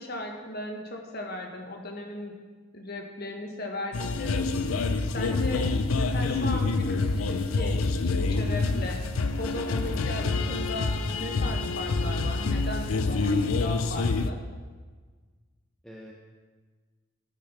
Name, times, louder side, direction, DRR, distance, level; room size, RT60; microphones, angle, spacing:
voice 1, 0.0-2.4 2.7-4.5 4.8-4.9 5.1-5.6 6.0-7.8 8.0-9.0 9.4-14.4, left 1 dB, 45° left, 2 dB, 1.5 m, -37 dB
sound 1, 3.9-14.3, left 3 dB, 85° left, 0.6 m, -27 dB
voice 2, 10.4-10.8 15.8-16.1, equal, 5° left, -3 dB, 0.8 m, -45 dB
12.0 x 6.4 x 5.9 m, 1.4 s
head